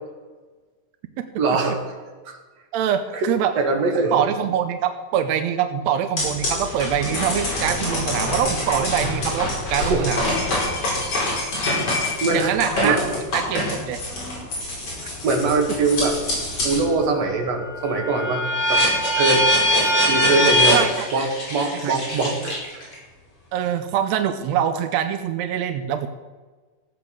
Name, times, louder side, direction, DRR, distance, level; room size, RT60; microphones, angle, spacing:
voice 1, 1.4-2.3 3.1-4.1 9.8-10.1 12.2-13.0 15.2-16.2 16.6-18.4 18.7-18.8 19.1-19.4 20.1-20.8 21.1-22.8, right 3 dB, 55° right, 2 dB, 2.8 m, -22 dB
voice 2, 2.7-3.5 4.1-10.3 12.3-13.0 13.3-14.0 20.7-21.1 21.8-21.9 22.4-22.5 23.5-26.1, right 9 dB, 75° right, 8 dB, 1.6 m, -24 dB
sound 1, 6.2-16.9 17.3-22.9, left 1 dB, 55° left, 6.1 m, -24 dB
15.0 x 8.5 x 6.6 m, 1.3 s
omnidirectional pair, 3.7 m